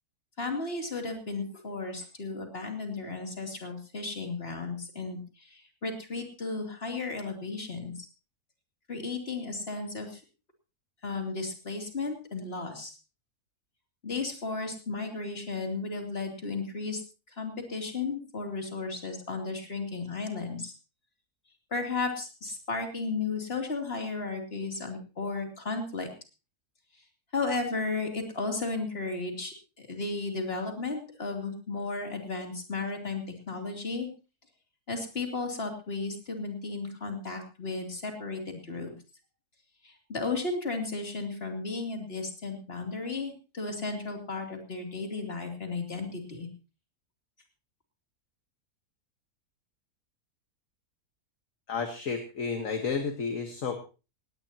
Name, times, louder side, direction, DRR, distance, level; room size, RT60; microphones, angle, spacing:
voice 1, 0.4-7.9 8.9-10.2 11.0-13.0 14.0-17.0 17.4-20.7 21.7-26.1 27.3-34.1 34.9-38.9 39.8-46.5, left 3 dB, 40° left, 3 dB, 3.2 m, -34 dB
voice 2, 51.7-53.8, left 5 dB, 60° left, 5 dB, 1.8 m, -31 dB
18.5 x 18.0 x 2.9 m, 0.32 s
omnidirectional pair, 1.6 m